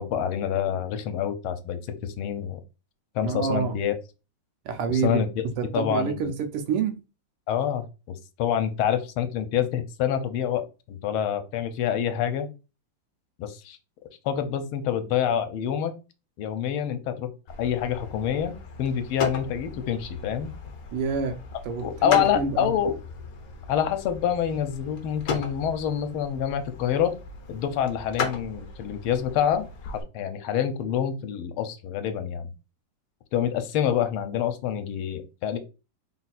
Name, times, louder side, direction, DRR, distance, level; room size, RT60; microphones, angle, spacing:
voice 1, 0.0-2.6 3.1-4.0 4.9-5.3 5.6-6.3 7.5-12.5 13.4-13.8 14.2-15.9 16.4-17.3 17.6-20.5 21.8-23.0 23.7-27.1 27.5-32.5 33.3-35.6, left 9 dB, 80° left, 1.4 m, -27 dB
voice 2, 3.2-3.7 4.6-5.2 5.6-7.0 20.9-21.4 21.6-22.7, right 5 dB, 90° right, 1.7 m, -27 dB
sound 1, 17.5-30.0, left 4 dB, 60° left, 1.0 m, -37 dB
3.9 x 2.4 x 4.1 m
omnidirectional pair, 2.4 m